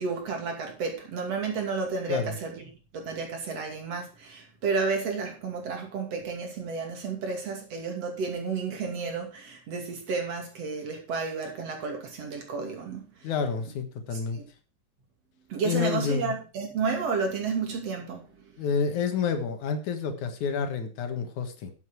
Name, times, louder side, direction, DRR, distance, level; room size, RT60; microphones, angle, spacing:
voice 1, 0.0-2.6 2.9-13.1 14.1-14.4 15.5-18.3, right 4 dB, 55° right, 3.6 m, -31 dB
voice 2, 13.2-14.4 15.6-16.3 18.6-21.7, left 6 dB, 75° left, 2.9 m, -29 dB
12.0 x 8.0 x 4.5 m
omnidirectional pair, 3.5 m